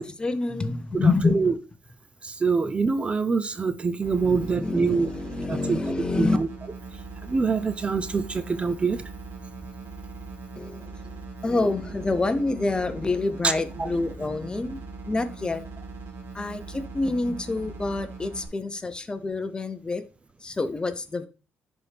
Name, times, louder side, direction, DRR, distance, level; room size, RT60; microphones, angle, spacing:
voice 1, 0.0-1.5 2.6-2.7 4.2-6.4 10.6-10.9 11.4-14.8 15.0-15.6 16.3-20.0 20.4-21.3, left 3 dB, 20° left, 0.8 m, -27 dB
voice 2, 0.9-1.5 2.2-5.1 5.5-5.8 6.2-6.5 7.2-9.0 13.8-13.9, right 4 dB, 30° right, 0.6 m, -25 dB
sound 1, 4.0-18.5, right 3 dB, 75° right, 2.3 m, -40 dB
10.5 x 4.3 x 3.5 m
cardioid pair, 115°, 4 cm